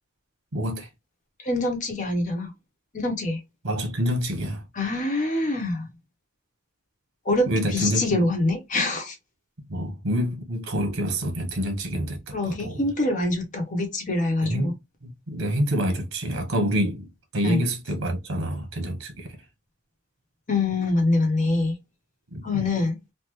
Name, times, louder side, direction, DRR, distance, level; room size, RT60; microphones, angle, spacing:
voice 1, 0.5-0.9 3.6-4.6 7.5-8.2 9.7-12.8 14.4-14.7 15.0-19.4 22.3-22.4, equal, 90° right, 1.0 m, -27 dB
voice 2, 1.4-2.5 2.9-3.4 4.7-5.9 7.2-9.1 12.3-14.7 17.4-17.6 20.5-21.8 22.4-23.0, left 2 dB, 40° left, 1.0 m, -25 dB
3.3 x 2.1 x 3.0 m
head